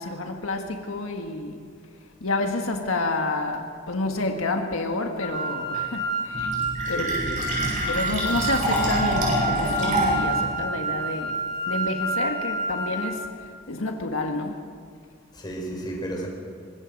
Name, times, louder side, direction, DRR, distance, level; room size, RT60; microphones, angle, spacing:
voice 1, 0.0-1.6 2.2-6.6 6.9-7.1 7.5-11.4 11.7-14.6, left 2 dB, 90° left, 3 dB, 1.6 m, -29 dB
sound 1, 5.2-13.0, right 2 dB, 60° left, 6.5 m, -29 dB
Fill (with liquid), 6.3-10.3, right 1 dB, 40° right, 7.2 m, -26 dB
voice 2, 6.8-7.3 15.3-16.3, right 1 dB, 20° left, 0 dB, 4.6 m, -33 dB
24.5 x 21.0 x 5.3 m, 2.1 s
head